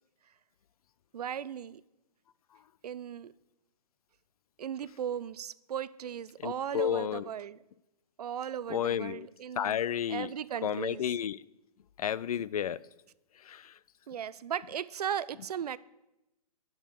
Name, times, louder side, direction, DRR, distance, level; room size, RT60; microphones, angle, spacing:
voice 1, 1.1-1.8 2.8-3.3 4.6-7.6 8.2-9.8 10.1-11.0 14.1-15.8, right 9 dB, 75° right, 0.5 m, -37 dB
voice 2, 6.4-7.3 8.7-9.3 9.6-10.3 10.6-11.4 12.0-12.8 13.4-13.8, left 9 dB, 65° left, 0.4 m, -32 dB
10.0 x 6.4 x 6.5 m
hypercardioid pair, 155°, 20 cm